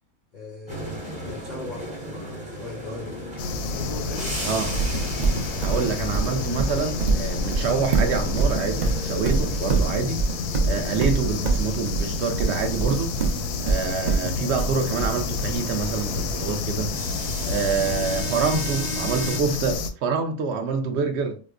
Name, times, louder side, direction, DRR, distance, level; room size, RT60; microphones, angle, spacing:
voice 1, 0.3-3.2 3.7-4.4, left 2 dB, 65° left, 0.4 m, -39 dB
sound 1, 0.7-19.4, right 1 dB, 5° right, 0.7 m, -36 dB
sound 2, 3.4-19.9, left 4 dB, 85° left, 1.1 m, -29 dB
voice 2, 4.4-4.7 5.6-10.2 10.6-13.1 13.6-17.0 17.4-21.4, right 5 dB, 60° right, 0.7 m, -26 dB
Livestock farm animals working animals, 4.7-15.6, right 4 dB, 90° right, 0.3 m, -24 dB
4.9 x 2.0 x 2.4 m
omnidirectional pair, 1.6 m